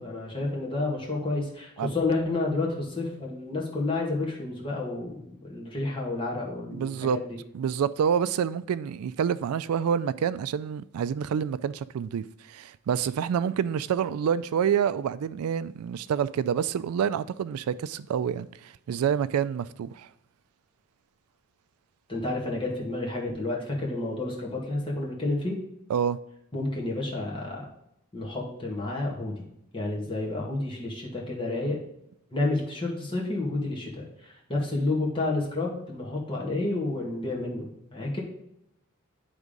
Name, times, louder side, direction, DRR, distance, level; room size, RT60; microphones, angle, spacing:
voice 1, 0.0-7.4 22.1-25.6 26.5-27.7 28.1-29.4 29.7-31.8 32.3-38.2, left 2 dB, 25° left, 1.8 m, -30 dB
voice 2, 6.7-7.2 7.5-20.1 25.9-26.2, right 8 dB, 85° right, 0.3 m, -27 dB
9.4 x 3.6 x 5.2 m
head